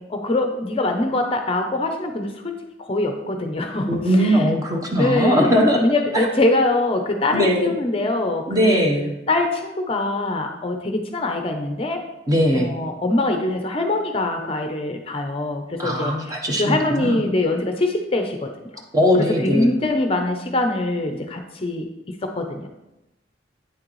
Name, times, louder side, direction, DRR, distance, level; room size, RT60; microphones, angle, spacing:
voice 1, 0.0-4.5 5.0-8.9 9.3-12.0 12.5-18.5 19.2-22.7, left 2 dB, 30° left, 5 dB, 0.6 m, -23 dB
voice 2, 3.9-5.8 6.1-6.3 7.3-7.7 8.5-9.1 12.3-12.8 15.8-17.2 18.9-19.7, equal, 20° right, 1 dB, 0.9 m, -19 dB
8.7 x 6.4 x 3.1 m, 0.95 s
head